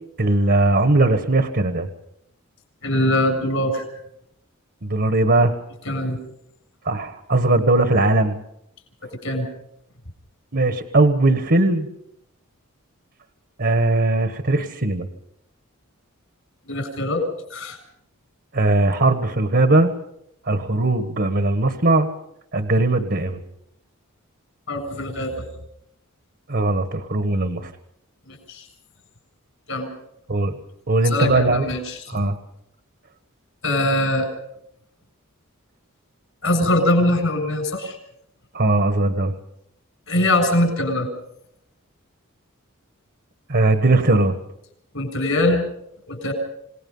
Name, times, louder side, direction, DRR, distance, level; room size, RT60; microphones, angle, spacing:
voice 1, 0.2-1.9 4.8-5.5 6.8-8.4 10.5-11.9 13.6-15.1 18.5-19.9 20.5-22.1 22.5-23.4 26.5-27.7 30.3-30.6 30.9-31.7 32.1-32.4 38.5-39.3 43.5-44.3, right 2 dB, 50° right, 8 dB, 1.4 m, -19 dB
voice 2, 2.8-3.9 5.9-6.2 9.2-9.5 16.7-17.2 17.5-17.8 24.7-25.5 28.3-28.7 29.7-29.9 31.0-32.2 33.6-34.3 36.4-38.0 40.1-41.1 44.9-45.6 46.1-46.3, left 1 dB, 65° left, 6 dB, 7.3 m, -22 dB
28.0 x 19.5 x 5.6 m, 0.76 s
head